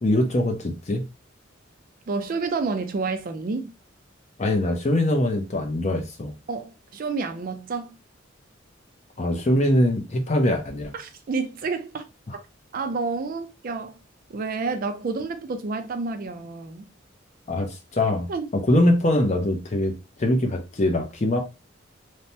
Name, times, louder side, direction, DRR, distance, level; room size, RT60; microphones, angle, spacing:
voice 1, 0.0-1.0 4.4-6.3 9.2-10.9 12.3-12.4 17.5-18.3 18.5-21.4, left 1 dB, 35° left, 0.5 m, -23 dB
voice 2, 2.1-3.7 6.5-7.9 10.9-12.0 12.7-14.0 14.3-16.9 18.3-18.5, right 4 dB, 45° right, 0.4 m, -29 dB
3.1 x 2.1 x 2.7 m
head